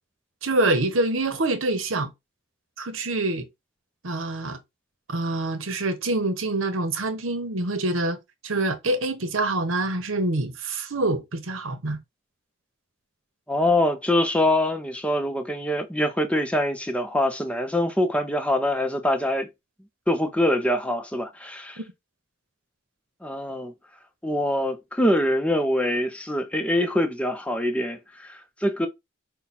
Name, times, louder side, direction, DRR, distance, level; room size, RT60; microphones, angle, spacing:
voice 1, 0.4-2.1 2.8-3.5 4.0-4.6 5.1-8.2 8.4-12.0, right 2 dB, 75° right, 1.0 m, -26 dB
voice 2, 13.5-19.5 20.1-21.8 23.2-23.7 24.2-28.9, left 1 dB, 5° left, 0.6 m, -24 dB
5.7 x 2.2 x 4.1 m
head